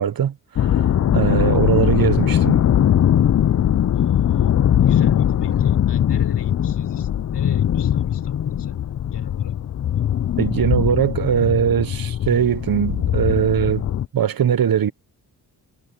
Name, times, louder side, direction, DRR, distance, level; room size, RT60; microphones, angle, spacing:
voice 1, 0.0-2.6 10.4-13.8 14.1-14.9, right 8 dB, 60° right, 1.0 m, -20 dB
sound 1, 0.6-14.1, left 10 dB, 40° left, 0.5 m, -20 dB
voice 2, 3.9-8.9 9.1-9.6, left 7 dB, 75° left, 4.2 m, -39 dB
cardioid pair, 95°, 41 cm